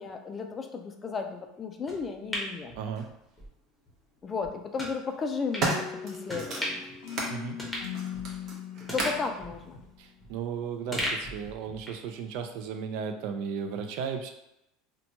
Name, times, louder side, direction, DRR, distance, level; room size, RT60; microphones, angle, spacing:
voice 1, 0.0-2.7 4.2-6.9 8.9-9.8, left 5 dB, 25° left, 5 dB, 0.3 m, -34 dB
sound 1, 1.9-3.5 3.9-4.0 4.8-5.0 5.5-5.7 6.3-7.0 7.3-7.4 7.6-8.5 8.9-10.5 10.9-12.1 12.4-12.5, equal, 5° left, 0.8 m, -37 dB
voice 2, 2.7-3.1 7.3-7.6 10.0-14.3, right 7 dB, 65° right, 6 dB, 0.3 m, -35 dB
sound 2, 3.0-3.1 4.2-4.5 5.1-7.4 7.8-9.3 10.2-10.3, right 2 dB, 45° right, 0.7 m, -34 dB
sound 3, 5.6-10.3, left 9 dB, 85° left, 0.5 m, -40 dB
2.8 x 2.2 x 2.7 m, 0.88 s
supercardioid pair, 130°, 0 cm